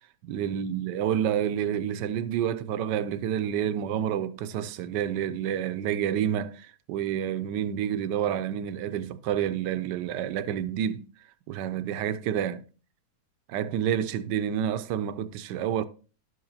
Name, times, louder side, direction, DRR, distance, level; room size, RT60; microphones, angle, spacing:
voice 1, 0.2-11.0 11.5-12.6 13.5-15.8, right 9 dB, 80° right, 1.2 m, -29 dB
11.5 x 7.8 x 2.7 m
omnidirectional pair, 1.9 m